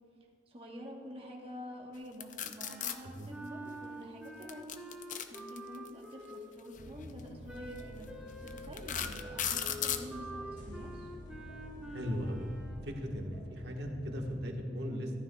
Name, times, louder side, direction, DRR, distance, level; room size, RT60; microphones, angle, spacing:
voice 1, 0.5-4.7 5.3-8.1 8.4-11.1, equal, 30° right, -1 dB, 1.3 m, -48 dB
sound 1, 2.2-3.0 4.4-5.9 7.0-7.2 7.8-7.9 8.5-10.1, left 9 dB, 45° left, 0.5 m, -35 dB
Wind instrument woodwind instrument, 2.6-6.7 7.4-12.9, right 1 dB, 5° right, 1.2 m, -47 dB
sound 2, 6.7-14.4, left 1 dB, 75° left, 2.7 m, -48 dB
voice 2, 11.9-12.5 12.8-15.2, equal, 65° right, 1 dB, 1.4 m, -37 dB
14.5 x 12.5 x 2.3 m, 2.4 s
head